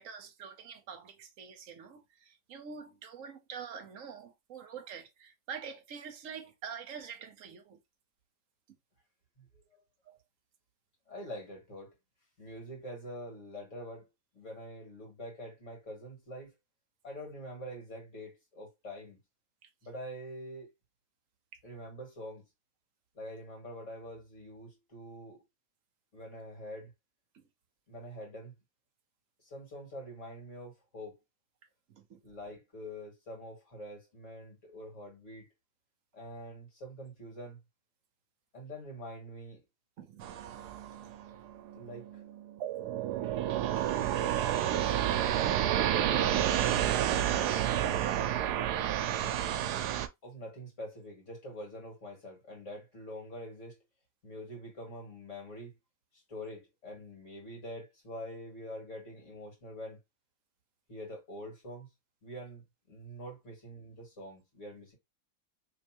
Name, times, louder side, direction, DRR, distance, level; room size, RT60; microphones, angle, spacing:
voice 1, 0.0-7.8 10.1-10.2 19.6-19.7 21.5-21.6 27.3-27.4 31.9-32.2 40.0-40.5 41.0-41.1, right 6 dB, 65° right, 1.0 m, -46 dB
voice 2, 9.4-9.8 11.1-11.9 12.4-14.1 14.3-16.6 17.0-19.2 19.8-20.7 21.6-22.4 23.1-25.4 26.1-26.9 27.9-28.5 29.4-31.2 32.2-35.5 36.1-37.6 38.5-39.6 41.7-42.2 45.9-47.1 50.2-53.8 54.2-55.7 56.1-60.0 60.9-61.9 62.2-65.0, equal, 50° left, 2.4 m, -45 dB
sound 1, 40.2-50.1, right 11 dB, 85° right, 1.1 m, -30 dB
3.3 x 3.2 x 2.9 m
omnidirectional pair, 1.7 m